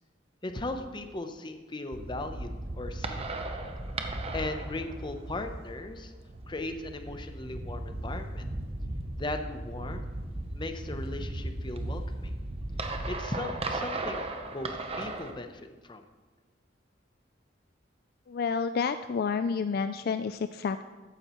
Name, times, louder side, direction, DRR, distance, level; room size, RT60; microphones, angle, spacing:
voice 1, 0.4-3.3 4.3-6.1 6.5-8.4 9.2-10.0 10.5-12.3 13.1-16.0, left 2 dB, 25° left, 7 dB, 0.7 m, -38 dB
sound 1, 1.9-15.3, right 2 dB, 30° right, 0.8 m, -36 dB
voice 2, 18.3-20.8, left 5 dB, 55° left, 10 dB, 0.3 m, -29 dB
13.5 x 9.8 x 3.1 m, 1.3 s
head